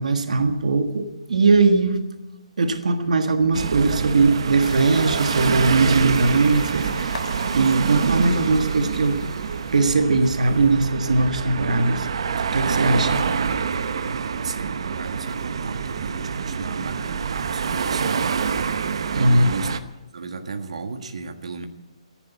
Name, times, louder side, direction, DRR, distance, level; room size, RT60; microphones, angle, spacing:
voice 1, 0.0-2.0 2.6-7.2 7.5-9.2 9.7-12.1 12.5-13.2 19.1-19.5, right 3 dB, 90° right, 8 dB, 1.4 m, -20 dB
sound 1, 3.5-19.8, right 6 dB, 50° right, 0.8 m, -26 dB
sound 2, 4.6-9.8, left 4 dB, 90° left, 2.2 m, -39 dB
voice 2, 14.3-18.2 19.1-19.7 20.1-21.7, right 4 dB, 65° right, 7 dB, 1.6 m, -34 dB
14.5 x 11.0 x 9.2 m, 1.1 s
hypercardioid pair, 180°, 4 cm